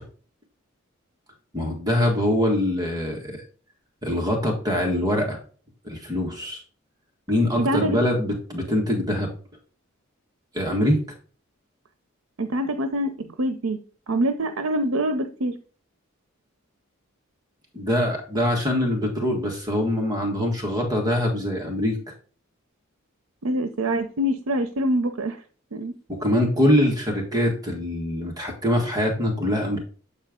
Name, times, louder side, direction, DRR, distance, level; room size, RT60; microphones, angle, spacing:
voice 1, 1.5-3.4 4.0-5.4 5.8-6.6 7.3-9.3 10.5-11.0 17.7-22.0 26.1-29.8, left 1 dB, 20° right, 1 dB, 1.5 m, -23 dB
voice 2, 7.6-8.0 12.4-13.8 14.1-15.5 23.4-25.4 25.7-25.9, right 1 dB, 90° right, 8 dB, 0.7 m, -25 dB
7.9 x 4.4 x 3.7 m, 0.41 s
head